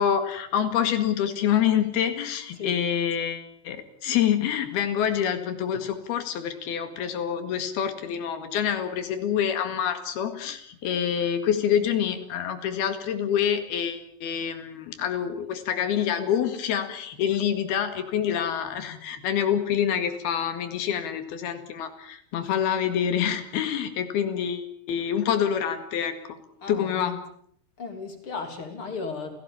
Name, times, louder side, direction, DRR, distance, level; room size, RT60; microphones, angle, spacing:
voice 1, 0.0-26.4 26.7-27.2, left 9 dB, 70° left, 9 dB, 3.8 m, -26 dB
voice 2, 2.6-2.9 26.6-27.2 27.8-29.4, left 4 dB, 35° left, 6 dB, 3.8 m, -35 dB
30.0 x 17.0 x 7.1 m, 0.65 s
omnidirectional pair, 4.7 m